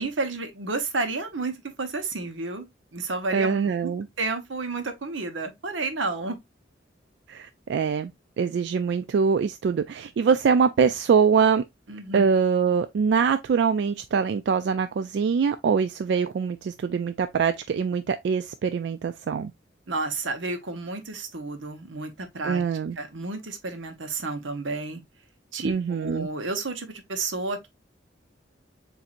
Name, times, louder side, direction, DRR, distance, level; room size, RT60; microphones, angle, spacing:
voice 1, 0.0-2.6 2.9-3.9 4.2-6.4 11.9-12.3 19.9-22.6 23.0-25.0 25.5-27.7, right 3 dB, 85° right, 1.0 m, -31 dB
voice 2, 3.3-4.1 7.3-8.1 8.4-11.6 12.1-19.5 22.4-23.0 25.6-26.3, right 6 dB, 65° right, 0.3 m, -23 dB
7.2 x 2.7 x 2.5 m
head